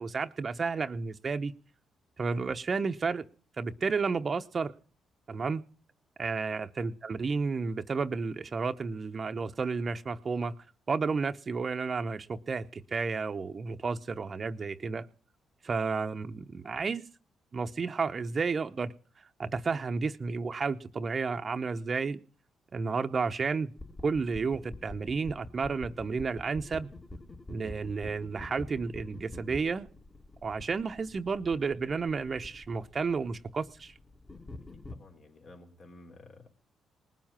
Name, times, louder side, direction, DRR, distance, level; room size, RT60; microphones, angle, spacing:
voice 1, 0.0-1.5 2.2-3.2 3.6-4.7 5.3-5.6 6.2-10.5 10.9-15.1 15.6-17.0 17.5-18.9 19.4-22.2 22.7-23.7 24.0-26.9 27.5-29.9 30.4-33.9, right 4 dB, 45° right, 0.9 m, -32 dB
sound 1, 23.8-35.0, left 2 dB, 30° left, 2.1 m, -47 dB
voice 2, 34.7-36.5, left 2 dB, 55° left, 3.7 m, -53 dB
19.5 x 7.3 x 7.4 m
supercardioid pair, 60°, 0 cm